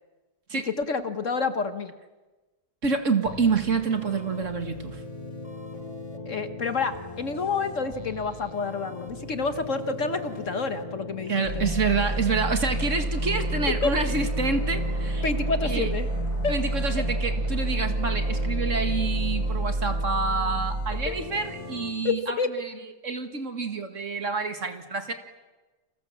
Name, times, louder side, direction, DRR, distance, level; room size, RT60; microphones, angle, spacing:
voice 1, 0.7-1.9 6.2-11.6 13.8-13.9 15.2-16.1 16.4-16.5 21.1-21.2 22.0-22.5, left 4 dB, 50° left, 10 dB, 1.5 m, -28 dB
voice 2, 2.8-5.0 11.3-15.2 15.6-15.9 16.5-22.7 23.0-25.1, right 4 dB, 45° right, 7 dB, 2.2 m, -28 dB
sound 1, 3.3-21.9, left 2 dB, 20° left, 2.7 m, -40 dB
sound 2, 11.4-21.1, right 1 dB, 70° right, 7.4 m, -28 dB
29.0 x 26.5 x 7.3 m, 1.2 s
omnidirectional pair, 1.8 m